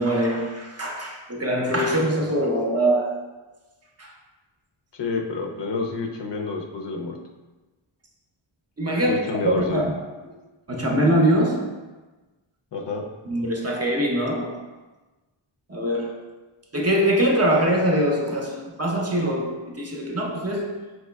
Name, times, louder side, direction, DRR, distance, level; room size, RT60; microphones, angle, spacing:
voice 1, 0.0-3.2 4.0-4.1 8.8-10.0 10.7-11.7 13.3-14.6 15.7-16.3 16.7-20.7, right 1 dB, 30° right, -1 dB, 0.5 m, -23 dB
voice 2, 5.0-7.2 9.1-9.8 12.7-13.0, left 4 dB, 60° left, 2 dB, 0.5 m, -28 dB
5.4 x 3.0 x 2.2 m, 1.2 s
wide cardioid pair, 110°, 50 cm